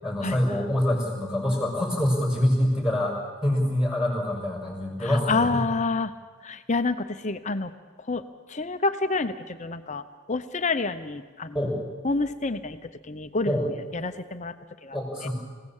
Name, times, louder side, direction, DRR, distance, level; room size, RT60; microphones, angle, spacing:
voice 1, 0.0-5.7 11.5-11.8 13.4-13.7 14.9-15.3, left 1 dB, ahead, 0 dB, 6.1 m, -25 dB
voice 2, 5.3-6.1 6.4-7.7 8.1-8.2 8.5-9.3 9.6-10.0 10.3-11.5 12.0-12.8 13.1-14.5 14.8-14.9 15.2-15.3, left 3 dB, 30° left, 10 dB, 0.9 m, -28 dB
27.0 x 17.5 x 7.3 m, 1.5 s
head